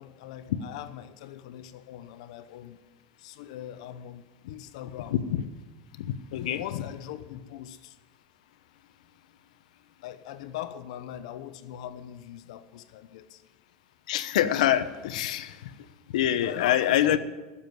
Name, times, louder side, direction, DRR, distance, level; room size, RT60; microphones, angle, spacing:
voice 1, 0.0-2.8 3.2-5.2 6.5-8.0 10.0-13.4 16.4-17.2, left 11 dB, 65° left, 11 dB, 1.0 m, -41 dB
voice 2, 5.1-5.4 6.0-6.6 14.1-15.7 16.1-17.2, left 11 dB, 85° left, 11 dB, 1.0 m, -25 dB
15.5 x 7.3 x 9.5 m, 1.2 s
supercardioid pair, 175°, 4 cm